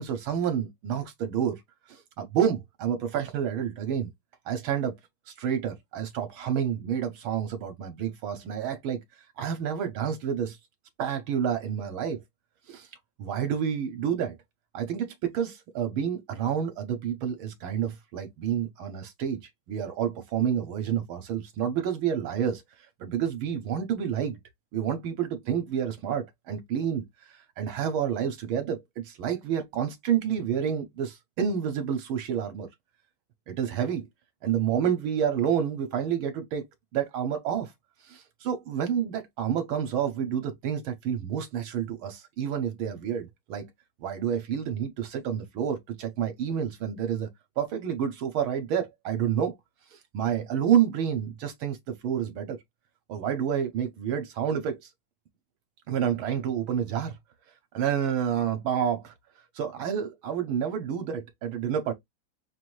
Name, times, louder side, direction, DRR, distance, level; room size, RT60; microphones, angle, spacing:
voice 1, 0.0-1.6 1.9-4.1 4.5-5.0 5.3-9.0 9.4-10.6 11.0-12.2 12.7-12.9 13.2-14.4 14.7-19.4 19.7-22.6 23.0-24.4 24.7-27.0 27.3-32.7 33.5-34.1 34.4-36.7 36.9-37.7 38.0-43.7 44.0-47.3 47.6-49.5 49.9-52.6 53.1-54.9 55.9-57.1 57.7-59.1 59.5-61.9, right 8 dB, 70° right, 1.5 m, -29 dB
5.6 x 2.6 x 3.1 m
omnidirectional pair, 2.4 m